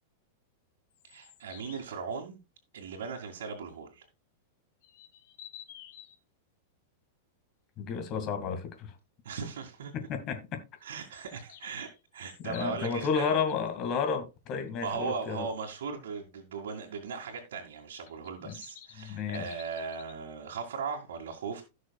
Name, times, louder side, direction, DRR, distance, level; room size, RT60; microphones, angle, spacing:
sound 1, 0.9-2.0 4.8-6.1 11.0-13.6 17.9-20.1, left 10 dB, 55° left, 2.0 m, -51 dB
voice 1, 1.0-2.4 2.7-4.1 9.2-9.9 10.8-13.4 14.8-21.6, right 5 dB, 85° right, 2.2 m, -38 dB
voice 2, 7.8-8.9 9.9-10.6 12.4-15.5 18.4-18.6 19.0-19.6, left 6 dB, 30° left, 2.0 m, -32 dB
16.5 x 6.3 x 2.3 m
supercardioid pair, 160°, 0 cm